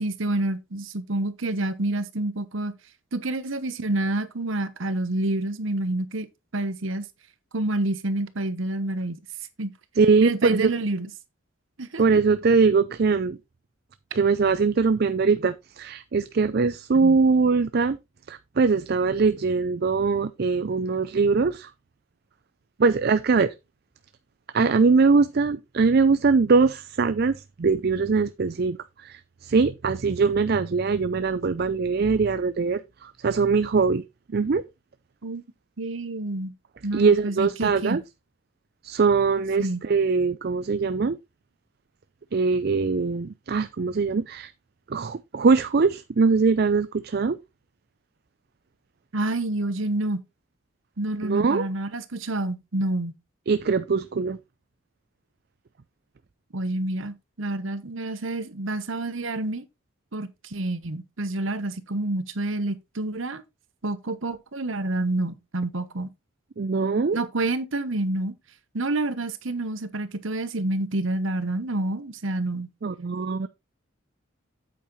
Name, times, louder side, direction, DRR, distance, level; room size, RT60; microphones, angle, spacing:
voice 1, 0.0-2.7 3.1-6.3 6.5-7.0 7.5-9.2 9.6-9.7 10.2-11.1 11.8-12.0 16.9-17.2 23.4-23.5 35.2-35.4 35.8-36.5 36.8-38.0 39.6-39.8 49.1-50.2 51.0-53.2 56.5-59.6 60.1-63.4 63.8-66.1 67.1-68.3 68.7-72.7, right 2 dB, 70° right, 1.1 m, -28 dB
voice 2, 10.0-10.7 12.0-13.4 14.1-18.0 18.3-21.7 22.8-23.5 24.5-34.0 34.3-34.6 36.9-38.0 38.8-41.2 42.3-44.5 44.9-47.4 51.2-51.7 53.5-54.4 66.6-67.2 72.8-73.5, right 4 dB, 50° right, 0.4 m, -22 dB
8.6 x 8.4 x 3.1 m
head